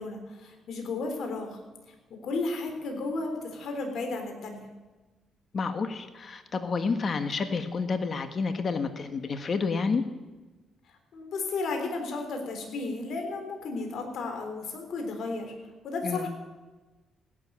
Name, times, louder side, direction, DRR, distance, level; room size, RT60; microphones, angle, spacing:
voice 1, 0.0-1.6 2.1-4.7 10.9-15.5 15.8-16.3, left 3 dB, 65° left, 4 dB, 3.7 m, -33 dB
voice 2, 5.5-10.0 16.0-16.3, left 4 dB, 45° left, 8 dB, 1.5 m, -29 dB
16.5 x 11.0 x 7.5 m, 1.2 s
cardioid pair, 90°, 0 cm